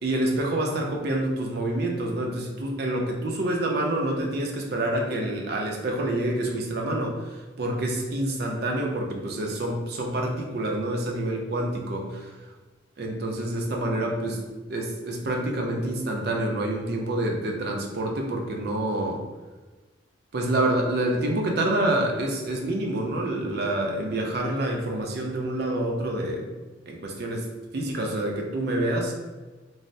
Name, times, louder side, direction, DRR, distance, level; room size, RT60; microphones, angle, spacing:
voice 1, 0.0-12.3 13.0-14.4 14.7-19.2 20.3-26.5 26.9-27.5 27.7-29.1, right 1 dB, 60° right, 1 dB, 0.5 m, -27 dB
3.2 x 2.0 x 2.5 m, 1.3 s
head